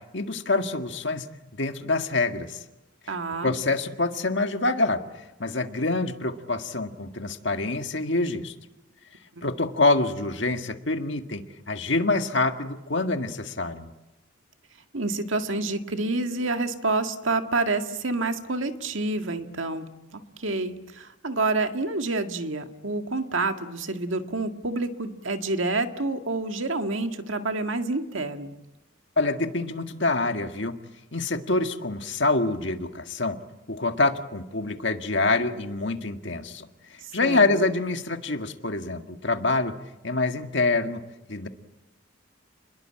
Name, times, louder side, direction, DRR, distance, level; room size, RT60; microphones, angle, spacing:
voice 1, 0.1-1.3 1.5-2.6 3.1-3.2 3.4-5.0 5.4-8.5 9.4-13.9 29.2-30.8 31.1-33.4 33.7-36.7 37.1-39.7 40.0-41.0 41.3-41.5, left 3 dB, 65° left, 7 dB, 1.8 m, -26 dB
voice 2, 3.1-3.6 9.4-9.5 14.9-28.6 37.2-37.6, right 3 dB, 80° right, 6 dB, 2.0 m, -28 dB
29.5 x 21.5 x 8.8 m, 1.0 s
head